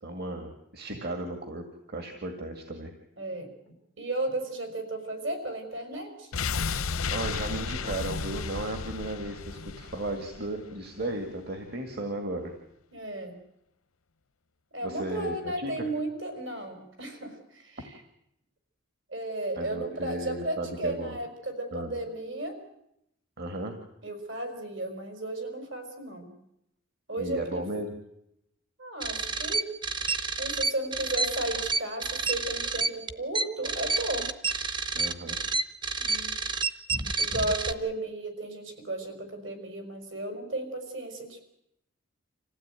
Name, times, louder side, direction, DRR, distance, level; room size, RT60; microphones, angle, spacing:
voice 1, 0.0-2.9 7.1-12.5 14.8-15.7 19.6-21.2 21.7-22.0 23.4-23.7 27.2-27.9 34.9-35.4, right 1 dB, 50° right, 5 dB, 2.2 m, -35 dB
voice 2, 3.2-3.5 4.0-6.3 12.9-13.4 14.7-18.0 19.1-22.6 24.0-26.3 27.1-27.6 28.8-29.7 30.4-34.3 36.0-36.3 37.2-41.4, right 2 dB, 65° right, 6 dB, 5.4 m, -34 dB
sound 1, 6.3-11.3 11.6-11.7, left 5 dB, 90° left, 0.8 m, -33 dB
sound 2, 29.0-37.7, right 4 dB, 20° right, 0.8 m, -29 dB
26.5 x 16.0 x 9.1 m, 0.80 s
head